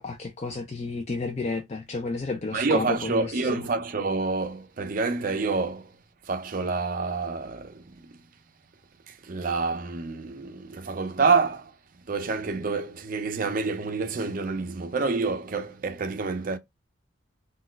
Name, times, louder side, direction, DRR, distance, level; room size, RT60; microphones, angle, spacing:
voice 1, 0.0-3.7, left 3 dB, 35° left, 0.4 m, -32 dB
voice 2, 2.5-5.9 6.3-8.2 9.1-11.7 12.1-16.6, right 4 dB, 45° right, 0.5 m, -28 dB
3.9 x 2.3 x 2.3 m
head